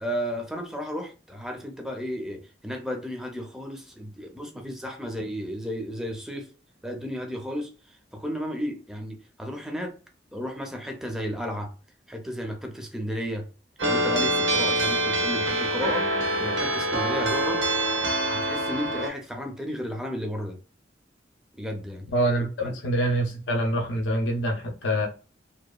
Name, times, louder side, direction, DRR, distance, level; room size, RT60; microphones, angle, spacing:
voice 1, 0.0-6.5 6.8-10.0 10.3-11.7 12.1-13.5 13.8-16.1 16.4-17.6 18.3-20.6 21.6-22.1 22.6-22.8, equal, 5° right, 0.4 m, -33 dB
sound 1, 13.8-19.1, right 1 dB, 90° right, 0.8 m, -25 dB
voice 2, 22.1-25.1, right 1 dB, 85° left, 0.6 m, -25 dB
2.8 x 2.2 x 2.2 m
head